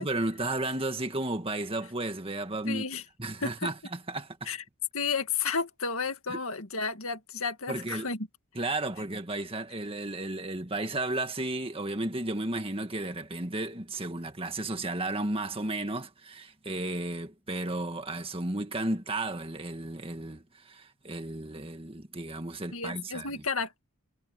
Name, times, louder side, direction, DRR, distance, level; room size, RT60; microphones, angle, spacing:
voice 1, 0.0-2.8 3.2-3.7 4.1-4.5 6.3-6.4 7.7-8.1 8.6-23.4, right 2 dB, 25° right, 1.9 m, -33 dB
voice 2, 2.7-3.0 3.4-3.7 4.5-4.6 4.9-8.3 22.7-23.8, left 5 dB, 65° left, 2.1 m, -32 dB
head